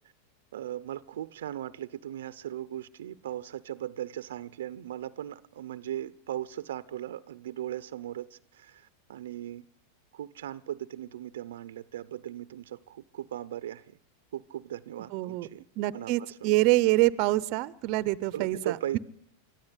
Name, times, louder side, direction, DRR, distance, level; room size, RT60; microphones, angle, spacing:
voice 1, 0.5-9.6 10.1-14.0 14.3-15.6 15.9-16.5 18.3-19.0, right 12 dB, 80° right, 15 dB, 0.7 m, -38 dB
voice 2, 15.1-15.5 15.8-19.0, right 18 dB, 50° right, 19 dB, 0.8 m, -26 dB
24.0 x 13.5 x 8.3 m, 0.71 s
hypercardioid pair, 125°, 0 cm